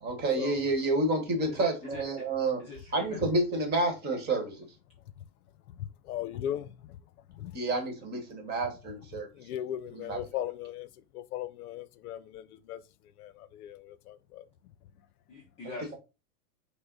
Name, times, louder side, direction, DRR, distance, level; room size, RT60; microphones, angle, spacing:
voice 1, 0.0-2.6 2.9-4.7 7.5-9.3 10.0-10.2, right 2 dB, 20° right, 1.2 m, -29 dB
voice 2, 1.5-2.3 2.6-3.2 15.3-15.9, left 2 dB, 15° left, 0.5 m, -44 dB
voice 3, 5.7-7.0 7.3-7.6 9.1-12.8 13.2-14.4, left 11 dB, 75° left, 0.6 m, -38 dB
5.6 x 2.1 x 3.8 m
supercardioid pair, 150°, 45 cm